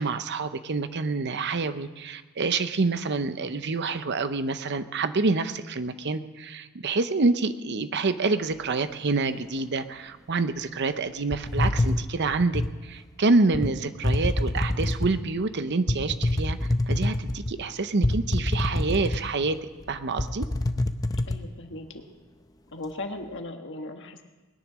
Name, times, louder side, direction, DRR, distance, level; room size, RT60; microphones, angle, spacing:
voice 1, 0.0-20.5, right 3 dB, 50° right, 11 dB, 0.7 m, -27 dB
sound 1, 11.3-12.8 13.5-13.7 14.0-15.2 15.9-17.5 18.0-19.5 19.8-19.9 20.2-21.4, left 1 dB, 15° left, 0.6 m, -26 dB
voice 2, 21.3-22.0 22.7-24.2, left 2 dB, 55° left, 5 dB, 1.5 m, -37 dB
20.5 x 10.5 x 6.2 m, 1.2 s
head